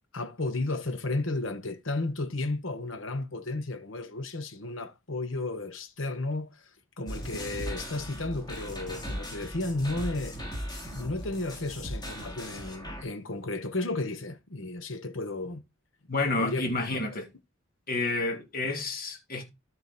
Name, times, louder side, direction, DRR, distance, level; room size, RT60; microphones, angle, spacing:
voice 1, 0.1-6.6 7.0-10.5 10.9-15.6 16.4-16.7 16.9-17.1, left 2 dB, 70° left, 1.3 m, -33 dB
sound 1, 7.1-13.0, equal, 20° left, 3.5 m, -38 dB
voice 2, 16.1-17.3 17.9-19.4, left 2 dB, 45° left, 2.5 m, -29 dB
13.0 x 4.6 x 4.4 m
head